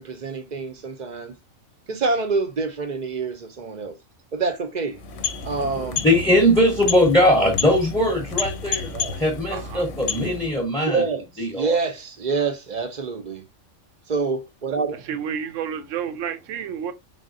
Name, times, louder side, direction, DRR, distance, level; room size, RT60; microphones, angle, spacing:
voice 1, 0.0-1.3 1.9-3.9 4.3-5.0 5.4-6.0 8.9-9.1 10.8-13.4 14.1-15.2, right 4 dB, 50° right, 0.6 m, -26 dB
sound 1, 4.9-10.7, left 6 dB, 90° left, 1.0 m, -31 dB
voice 2, 6.0-11.0 11.4-11.8, left 1 dB, 5° left, 0.7 m, -20 dB
voice 3, 9.5-9.8 15.1-16.9, right 8 dB, 90° right, 1.0 m, -30 dB
3.8 x 3.5 x 2.5 m
omnidirectional pair, 1.3 m